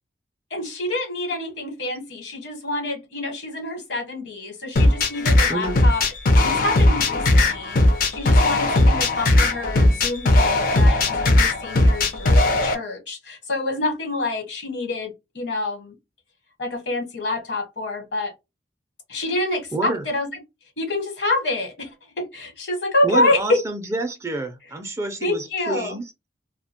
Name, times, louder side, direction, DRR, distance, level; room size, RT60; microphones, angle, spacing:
voice 1, 0.5-6.0 6.3-15.9 16.6-18.3 19.1-20.3 20.8-21.9 22.2-23.6 25.2-25.9, left 2 dB, 65° left, 1.1 m, -27 dB
sound 1, 4.7-12.7, left 2 dB, 50° left, 0.5 m, -18 dB
voice 2, 19.7-20.0 23.0-26.1, right 2 dB, 15° right, 0.3 m, -28 dB
2.3 x 2.1 x 2.7 m
head